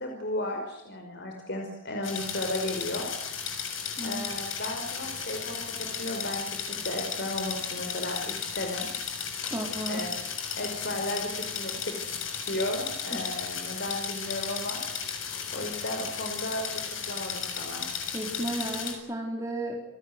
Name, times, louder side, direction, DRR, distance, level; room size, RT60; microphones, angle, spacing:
voice 1, 0.0-3.1 4.0-8.9 9.9-10.3 10.6-11.9 12.4-14.8 15.5-17.9, left 1 dB, 55° left, 2 dB, 5.2 m, -34 dB
sound 1, 2.0-18.9, left 7 dB, 85° left, 7.0 m, -35 dB
voice 2, 9.5-10.1 13.1-13.2 18.1-19.8, right 1 dB, 15° right, 0 dB, 3.8 m, -33 dB
29.5 x 18.5 x 9.6 m, 0.79 s
head